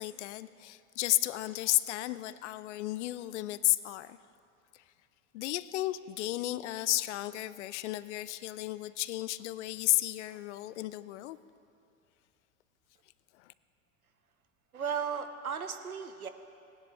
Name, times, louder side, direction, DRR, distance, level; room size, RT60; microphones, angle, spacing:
voice 1, 0.0-4.2 5.3-11.4 13.4-13.5, left 16 dB, 55° left, 16 dB, 0.5 m, -33 dB
voice 2, 14.7-16.3, right 7 dB, 85° right, 9 dB, 0.8 m, -35 dB
18.5 x 10.5 x 3.6 m, 2.6 s
figure-of-eight pair, 80°, 42 cm